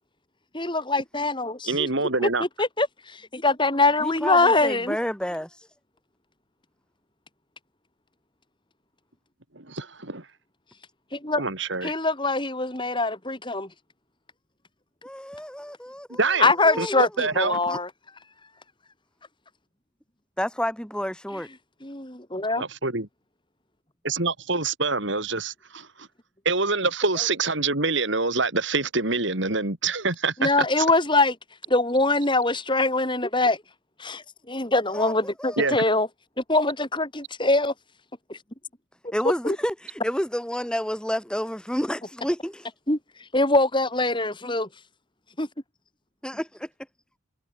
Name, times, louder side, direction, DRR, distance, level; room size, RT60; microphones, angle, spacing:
voice 1, 0.5-1.9 2.6-5.0 11.1-11.4 11.8-13.7 16.4-17.9 21.8-22.6 30.4-31.4 31.7-33.6 34.0-36.1 36.4-37.7 38.3-38.4 39.4-39.6 42.9-43.0 43.3-44.7 45.4-45.5, left 2 dB, 20° left, 4.6 m, -23 dB
voice 2, 1.7-2.4 9.5-10.2 11.4-11.9 16.2-17.6 22.5-23.1 24.0-25.9 26.4-30.5 30.8-30.9 35.6-35.8, right 3 dB, 60° right, 3.3 m, -26 dB
voice 3, 4.0-5.5 15.0-16.2 16.6-17.0 17.7-17.8 20.4-21.5 27.1-27.3 34.9-35.8 39.1-42.7 46.2-46.7, equal, 5° left, 4.3 m, -30 dB
head